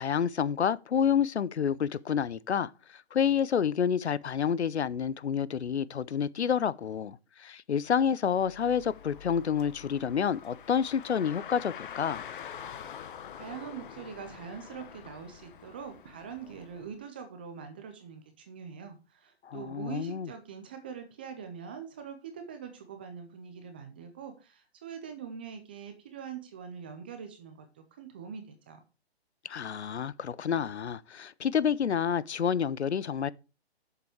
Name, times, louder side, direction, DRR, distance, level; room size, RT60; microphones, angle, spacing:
voice 1, 0.0-2.7 3.1-12.2 19.4-20.3 29.5-33.3, left 7 dB, 85° left, 0.7 m, -29 dB
Car, 8.3-16.9, left 9 dB, 50° left, 1.0 m, -46 dB
voice 2, 13.4-28.8, right 7 dB, 10° right, 0.4 m, -43 dB
7.3 x 7.0 x 4.9 m
hypercardioid pair, 145°, 32 cm